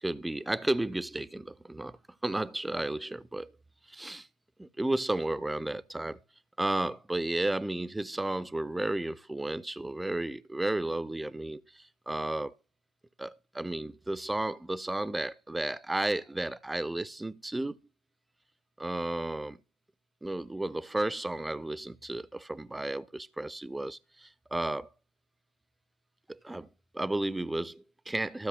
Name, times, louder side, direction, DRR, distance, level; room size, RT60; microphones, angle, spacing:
voice 1, 0.0-3.5 3.9-4.3 4.6-6.2 6.6-12.5 13.2-17.8 18.8-19.6 20.2-24.9 26.3-26.7 26.9-28.5, right 2 dB, 5° right, 0.4 m, -33 dB
15.5 x 7.7 x 2.3 m
figure-of-eight pair, 90°, 0 cm